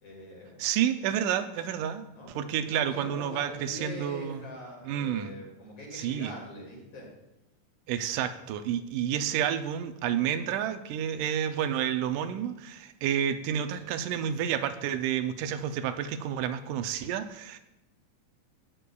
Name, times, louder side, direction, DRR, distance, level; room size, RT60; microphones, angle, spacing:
voice 1, 0.0-0.6 2.1-7.1 8.1-8.2, left 1 dB, 45° left, -3 dB, 3.0 m, -43 dB
voice 2, 0.6-2.1 2.4-4.4 4.9-5.3 5.9-6.3 7.9-17.6, right 9 dB, 80° right, 9 dB, 2.0 m, -30 dB
13.0 x 8.9 x 2.3 m, 0.95 s
omnidirectional pair, 3.9 m